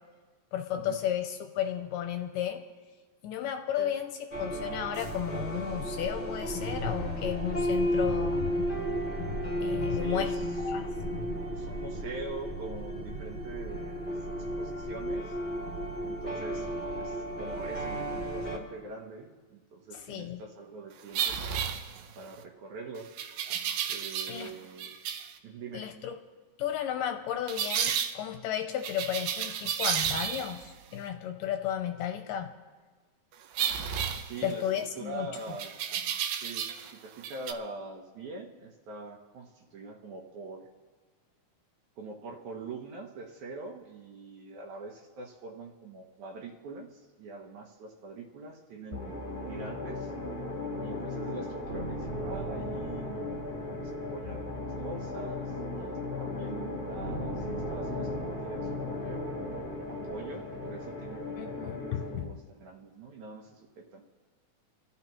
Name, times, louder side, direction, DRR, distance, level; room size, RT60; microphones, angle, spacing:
voice 1, 0.5-2.6 3.2-8.4 9.6-10.3 10.6-10.9 19.9-20.4 24.3-24.5 25.7-26.1 26.6-32.5 34.4-35.3 53.7-53.8 61.4-62.3, left 10 dB, 80° left, 5 dB, 2.1 m, -33 dB
sound 1, 4.3-18.6, equal, 5° left, 1.7 m, -33 dB
voice 2, 9.9-10.5 11.5-15.4 16.0-21.7 22.2-23.1 23.9-24.9 25.4-25.9 34.1-35.8 36.3-40.7 42.0-49.2 49.5-50.1 50.8-59.4 59.9-64.0, right 3 dB, 65° right, 1 dB, 2.1 m, -44 dB
sound 2, 21.1-22.3 23.2-24.5 24.8-25.3 27.5-28.1 28.8-30.7 33.5-34.8 35.6-36.9 37.2-37.5, right 8 dB, 85° right, 2.4 m, -32 dB
sound 3, 48.9-62.2, left 2 dB, 20° left, 0.7 m, -36 dB
27.0 x 13.5 x 3.1 m, 1.4 s
omnidirectional pair, 4.2 m